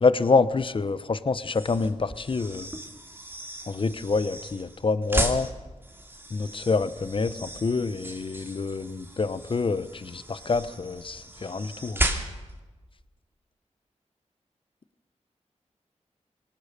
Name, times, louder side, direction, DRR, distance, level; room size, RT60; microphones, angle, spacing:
voice 1, 0.0-2.7 3.7-5.5 6.3-12.0, left 4 dB, 45° left, 14 dB, 0.9 m, -26 dB
sound 1, 1.4-12.6, right 1 dB, 20° right, 2.6 m, -35 dB
23.5 x 18.5 x 6.8 m, 1.2 s
wide cardioid pair, 85°, 12 cm